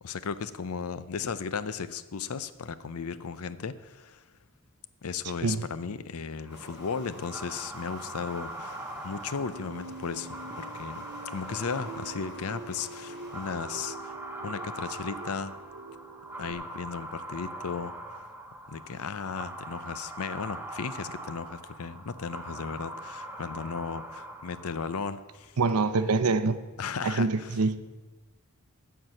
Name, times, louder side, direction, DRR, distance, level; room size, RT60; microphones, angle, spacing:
voice 1, 0.0-4.2 5.0-11.0 11.3-14.1 14.4-15.5 16.4-17.9 18.7-25.5 26.8-27.6, left 5 dB, 75° left, 14 dB, 0.6 m, -35 dB
sound 1, 6.4-25.3, right 1 dB, 10° right, 0.7 m, -42 dB
sound 2, 6.5-13.6, left 2 dB, 50° left, 1.7 m, -51 dB
sound 3, 9.5-16.5, right 3 dB, 50° right, 0.9 m, -45 dB
voice 2, 25.6-26.6 27.0-27.8, right 4 dB, 85° right, 11 dB, 0.7 m, -25 dB
13.0 x 4.7 x 7.6 m, 1.2 s
head